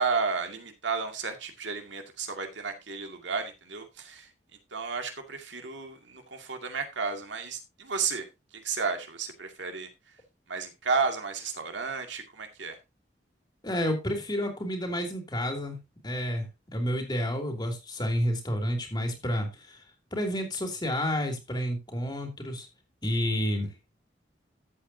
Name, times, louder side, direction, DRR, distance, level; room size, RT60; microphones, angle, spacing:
voice 1, 0.0-4.3 4.7-8.3 8.6-9.9 10.5-12.8, right 5 dB, 90° right, 2.2 m, -32 dB
voice 2, 13.6-15.8 16.0-16.5 16.7-19.8 20.1-22.7 23.0-23.7, equal, 25° left, 2.8 m, -30 dB
13.5 x 8.1 x 2.7 m
head